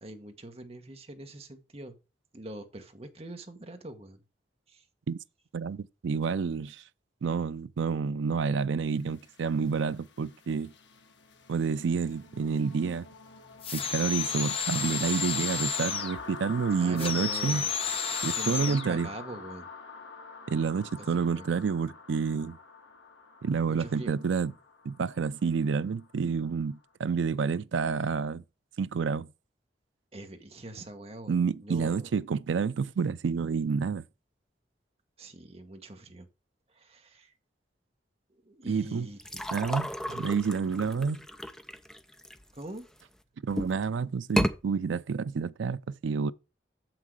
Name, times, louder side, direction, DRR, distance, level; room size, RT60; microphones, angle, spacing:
voice 1, 0.0-1.9 2.3-4.2 4.7-4.8 16.8-17.7 18.3-19.7 21.0-21.6 23.7-24.1 30.1-32.1 35.2-36.3 36.7-37.3 38.4-39.6 40.1-40.3 42.5-42.9, right 1 dB, 35° right, 1.2 m, -43 dB
voice 2, 5.5-6.8 7.2-10.7 11.5-13.1 13.7-17.6 18.2-19.1 20.5-22.6 23.4-24.5 24.9-28.4 28.8-29.3 31.3-34.0 38.7-39.1 39.5-41.2 43.4-46.3, right 5 dB, 85° right, 0.4 m, -29 dB
sound 1, 9.0-26.7, left 4 dB, 75° left, 1.3 m, -47 dB
sound 2, 13.6-16.2 17.0-18.9, left 6 dB, 30° left, 1.1 m, -31 dB
sound 3, 39.2-43.0 43.5-43.9 44.2-44.6, equal, 5° left, 0.5 m, -33 dB
7.4 x 6.0 x 4.6 m
head